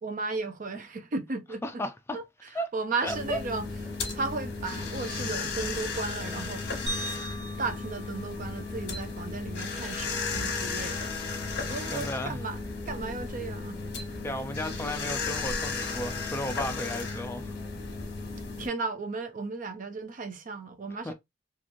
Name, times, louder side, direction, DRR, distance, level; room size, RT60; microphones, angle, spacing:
voice 1, 0.0-1.8 2.1-3.7 4.1-6.8 7.3-11.3 11.7-12.6 12.9-13.8 18.6-21.1, right 3 dB, 45° right, 0.5 m, -35 dB
voice 2, 3.0-3.4 11.9-12.4 14.2-17.5 21.0-21.1, equal, 15° left, 0.4 m, -34 dB
sound 1, 3.1-18.7, left 4 dB, 60° left, 1.0 m, -34 dB
sound 2, 6.9-9.2, right 1 dB, 90° right, 1.4 m, -39 dB
3.0 x 2.5 x 2.5 m
head